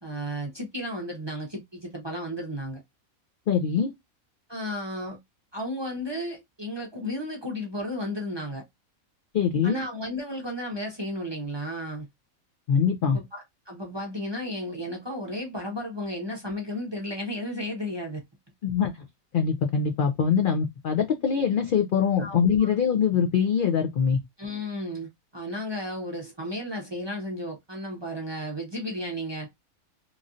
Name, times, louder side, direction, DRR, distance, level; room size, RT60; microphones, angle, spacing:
voice 1, 0.0-2.8 4.5-5.2 5.5-8.6 9.6-12.1 13.1-18.2 22.2-22.7 24.4-29.5, equal, 25° right, 0.6 m, -33 dB
voice 2, 3.5-3.9 9.3-9.8 12.7-13.2 18.6-18.9 19.3-24.2, left 7 dB, 75° left, 0.4 m, -23 dB
3.0 x 2.6 x 2.4 m
omnidirectional pair, 1.5 m